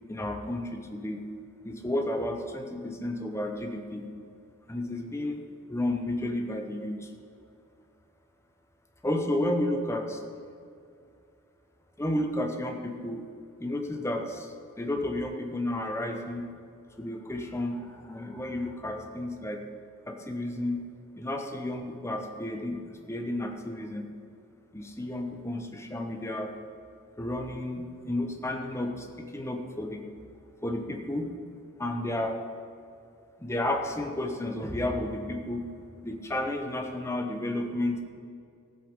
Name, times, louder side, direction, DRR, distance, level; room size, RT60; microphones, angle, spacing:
voice 1, 0.1-1.2 1.6-4.0 4.7-5.4 5.7-7.1 9.0-10.2 12.0-13.2 13.6-16.5 17.0-19.6 20.1-20.8 21.2-22.8 23.1-24.0 24.7-26.5 27.2-30.0 30.6-31.3 31.8-32.4 33.4-35.7 36.0-38.0, left 1 dB, 10° left, 4 dB, 0.9 m, -32 dB
15.0 x 8.0 x 5.3 m, 2.3 s
head